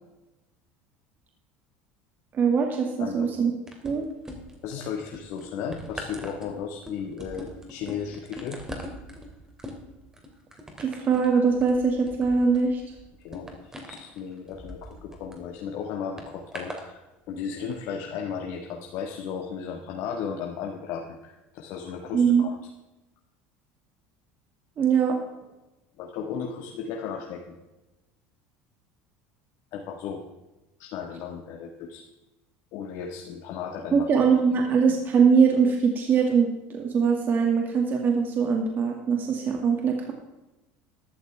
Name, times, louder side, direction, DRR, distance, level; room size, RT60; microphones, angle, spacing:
voice 1, 2.3-3.5 3.8-4.0 10.8-12.8 22.1-22.4 24.8-25.2 33.9-40.1, right 6 dB, 35° right, 1 dB, 2.1 m, -22 dB
voice 2, 2.9-3.3 4.6-8.6 13.2-17.0 17.3-22.6 26.0-27.5 29.7-30.2 30.8-32.0 32.7-34.1, left 7 dB, 65° left, 2 dB, 1.6 m, -35 dB
sound 1, 3.7-4.7 5.1-15.4 16.2-16.9 17.6-17.7, equal, 10° right, 2.9 m, -41 dB
13.5 x 12.0 x 3.5 m, 1.0 s
supercardioid pair, 120°, 5 cm